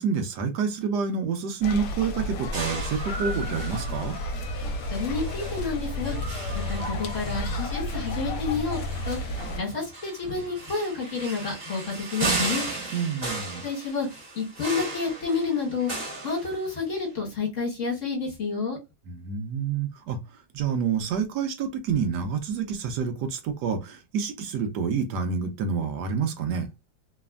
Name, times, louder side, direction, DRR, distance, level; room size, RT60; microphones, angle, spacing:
voice 1, 0.0-4.2 12.9-13.6 19.1-26.7, right 6 dB, 75° right, 1.3 m, -28 dB
sound 1, 1.6-9.6, left 1 dB, 75° left, 1.2 m, -32 dB
sound 2, 2.5-17.0, right 3 dB, 35° right, 1.3 m, -35 dB
voice 2, 4.9-6.2 6.7-8.8 9.1-9.2 9.6-12.7 13.6-14.1 14.3-15.9 16.2-18.8, left 4 dB, 50° left, 1.5 m, -29 dB
3.3 x 2.1 x 2.3 m
omnidirectional pair, 1.8 m